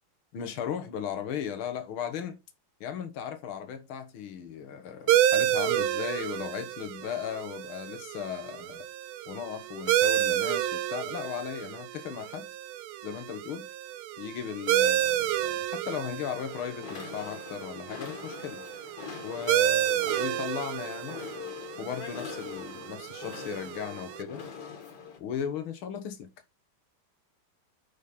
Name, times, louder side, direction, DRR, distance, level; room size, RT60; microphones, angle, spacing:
voice 1, 0.3-2.4 2.8-8.9 9.3-12.5 13.0-13.7 14.2-18.6 19.2-21.2 21.8-24.4 25.2-26.3, left 8 dB, 85° left, 2.1 m, -36 dB
sound 1, 5.1-24.2, right 12 dB, 85° right, 1.5 m, -30 dB
sound 2, 16.4-25.2, left 7 dB, 55° left, 2.3 m, -43 dB
9.0 x 5.3 x 4.3 m
omnidirectional pair, 2.3 m